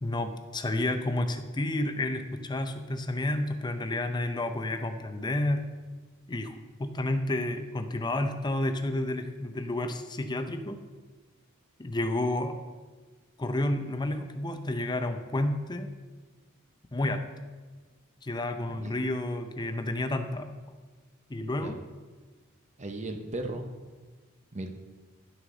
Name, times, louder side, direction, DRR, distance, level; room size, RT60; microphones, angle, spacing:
voice 1, 0.0-5.7 6.3-10.8 11.8-12.6 13.4-15.9 16.9-17.2 18.2-20.5 21.3-21.8, left 1 dB, 20° left, 7 dB, 0.6 m, -30 dB
voice 2, 22.8-23.7 24.5-24.7, right 2 dB, 35° right, 5 dB, 0.8 m, -36 dB
11.0 x 6.1 x 3.8 m, 1.4 s
head